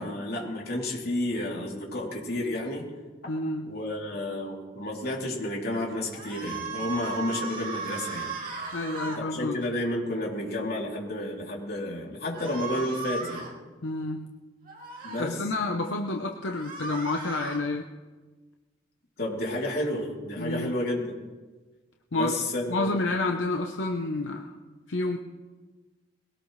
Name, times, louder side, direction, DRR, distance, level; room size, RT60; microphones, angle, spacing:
voice 1, 0.0-2.9 3.6-8.3 9.2-13.5 15.0-15.4 19.2-21.1 22.1-22.9, left 1 dB, 55° left, -2 dB, 3.3 m, -31 dB
voice 2, 3.3-3.7 8.7-9.6 13.8-14.3 15.2-17.9 20.4-20.7 22.1-22.3 22.7-24.5 24.9-25.2, left 2 dB, 80° left, 3 dB, 0.9 m, -29 dB
sound 1, 6.1-9.2 12.3-13.5 14.7-15.2 16.4-17.6, right 4 dB, 50° right, 2.7 m, -36 dB
21.5 x 17.5 x 3.3 m, 1.3 s
head